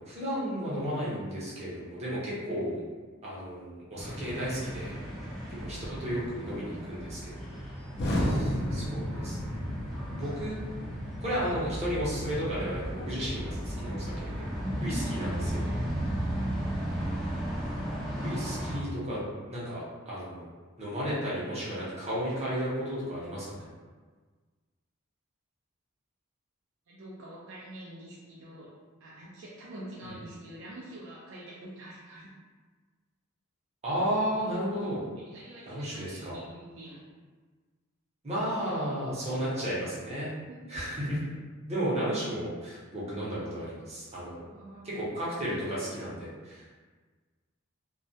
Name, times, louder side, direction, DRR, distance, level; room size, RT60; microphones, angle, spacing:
voice 1, 0.1-2.8 3.2-4.9 5.5-7.5 8.1-9.6 10.1-10.6 11.2-14.4 14.8-15.7 17.0-17.3 18.2-20.5 20.8-23.7 30.0-30.1 33.8-35.1 35.7-36.4 38.2-40.3 40.7-41.3 41.7-44.4 44.8-46.6, equal, 30° right, -8 dB, 0.8 m, -33 dB
sound 1, 4.0-18.8, equal, ahead, 0.5 m, -35 dB
Explosion, 8.0-17.9, equal, 55° left, 0.4 m, -36 dB
voice 2, 26.9-28.7 29.0-32.3 35.2-37.0 40.5-40.8 44.4-44.9, right 1 dB, 65° right, -7 dB, 0.4 m, -46 dB
2.2 x 2.1 x 2.6 m, 1.4 s
head